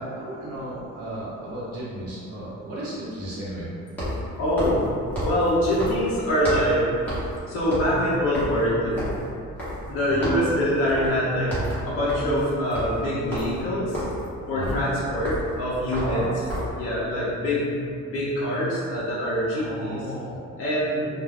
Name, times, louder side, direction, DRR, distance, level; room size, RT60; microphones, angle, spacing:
voice 1, 0.0-3.7 10.1-10.3 14.5-14.8 15.9-16.3 19.6-20.4, right 1 dB, 55° right, -9 dB, 1.0 m, -34 dB
sound 1, 0.6-0.7 3.9-6.8 7.1-7.4 7.6-10.0 10.2-10.5 10.9-11.1 11.4-16.8, equal, 5° left, 0.8 m, -31 dB
voice 2, 4.4-4.9 5.2-6.9 7.5-9.1 9.9-11.5 11.8-14.0 14.5-16.2 16.8-17.8 18.1-20.0 20.6-21.1, equal, 50° left, -8 dB, 0.5 m, -24 dB
sound 2, 9.9-13.3, right 5 dB, 15° right, 0.3 m, -38 dB
2.3 x 2.2 x 3.3 m, 2.4 s
cardioid pair, 160°, 30 cm